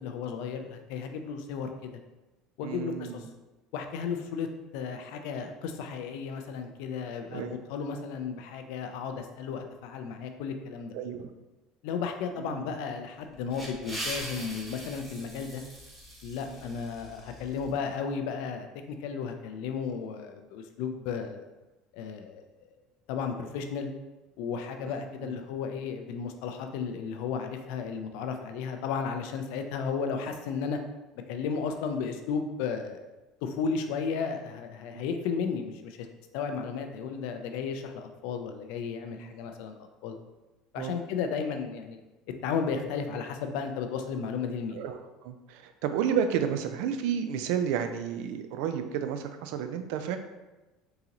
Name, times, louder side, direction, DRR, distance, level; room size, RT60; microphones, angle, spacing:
voice 1, 0.0-2.0 2.6-3.2 3.7-4.5 4.7-10.9 11.8-15.6 16.2-21.4 21.9-22.4 23.1-23.9 24.4-30.8 31.3-33.1 33.4-36.1 36.3-40.1 40.7-42.0 42.4-44.8, left 6 dB, 75° left, 5 dB, 0.4 m, -34 dB
voice 2, 2.6-3.2 7.3-7.5 10.9-11.3 12.4-12.7 16.4-16.6 24.8-25.0 25.2-25.4 34.9-35.1 39.2-39.3 40.8-40.9 44.7-50.2, right 8 dB, 75° right, 8 dB, 0.3 m, -32 dB
sound 1, 13.2-17.7, right 1 dB, 10° right, 1.2 m, -41 dB
3.8 x 2.8 x 2.9 m, 1.1 s
supercardioid pair, 95°, 0 cm